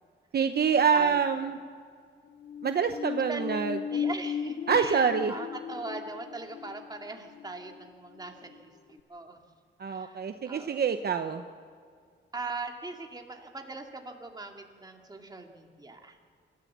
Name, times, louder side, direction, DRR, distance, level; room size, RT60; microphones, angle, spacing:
voice 1, 0.3-1.6 2.6-3.8 4.7-5.3 9.8-11.4, right 6 dB, 55° right, 7 dB, 0.8 m, -26 dB
voice 2, 0.9-1.3 3.3-3.5 3.9-9.4 9.9-10.2 10.4-10.8 12.3-16.2, right 3 dB, 20° right, 3 dB, 2.2 m, -40 dB
sound 1, 2.3-8.6 9.0-9.1, left 7 dB, 65° left, 0.7 m, -37 dB
26.0 x 14.0 x 7.4 m, 2.1 s
wide cardioid pair, 135°, 20 cm